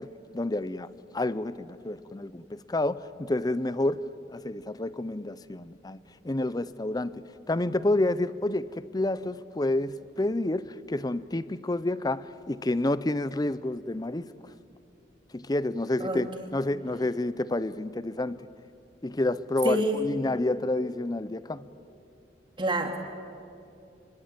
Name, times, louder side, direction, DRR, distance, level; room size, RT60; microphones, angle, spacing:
voice 1, 0.0-4.0 4.3-14.3 15.3-18.5 19.0-21.7, left 2 dB, 20° left, 0.6 m, -29 dB
voice 2, 16.0-16.5 19.6-20.1 22.6-23.0, right 1 dB, 30° right, 2.5 m, -28 dB
28.0 x 22.5 x 9.2 m
head